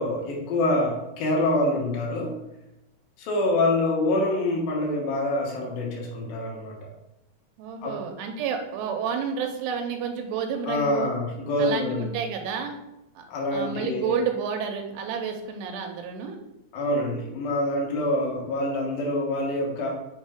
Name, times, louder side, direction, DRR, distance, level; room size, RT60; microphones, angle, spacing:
voice 1, 0.0-2.4 3.2-6.9 7.8-8.0 10.7-12.1 13.3-14.2 16.7-19.9, left 1 dB, 65° left, -2 dB, 2.9 m, -26 dB
voice 2, 7.6-11.1 11.6-12.8 13.2-13.3 13.5-16.4, right 6 dB, 85° right, 3 dB, 2.8 m, -30 dB
6.8 x 4.4 x 3.6 m, 0.89 s
omnidirectional pair, 4.8 m